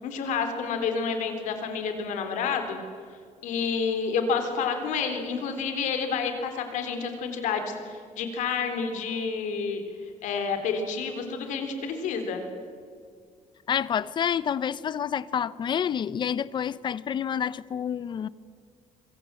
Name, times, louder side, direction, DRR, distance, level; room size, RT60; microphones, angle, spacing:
voice 1, 0.0-2.8 3.4-9.8 10.2-12.4, left 5 dB, 85° left, 6 dB, 3.8 m, -29 dB
voice 2, 13.7-18.3, left 8 dB, 40° left, 18 dB, 0.7 m, -28 dB
25.5 x 24.0 x 7.7 m, 2.1 s
cardioid pair, 155°, 12 cm